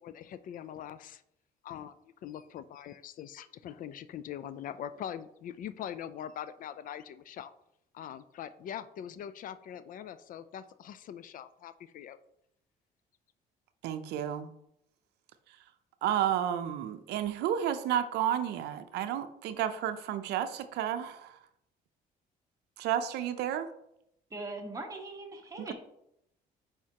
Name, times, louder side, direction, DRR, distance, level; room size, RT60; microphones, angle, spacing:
voice 1, 0.0-1.2 1.6-2.0 2.2-7.5 7.9-12.2, left 9 dB, 55° left, 13 dB, 0.4 m, -42 dB
voice 2, 13.8-14.5 16.0-21.4 22.8-23.7 25.6-25.7, right 10 dB, 80° right, 10 dB, 0.5 m, -31 dB
voice 3, 24.3-25.7, right 2 dB, 20° right, 2 dB, 1.3 m, -40 dB
7.4 x 5.0 x 2.9 m, 0.79 s
cardioid pair, 110°, 17 cm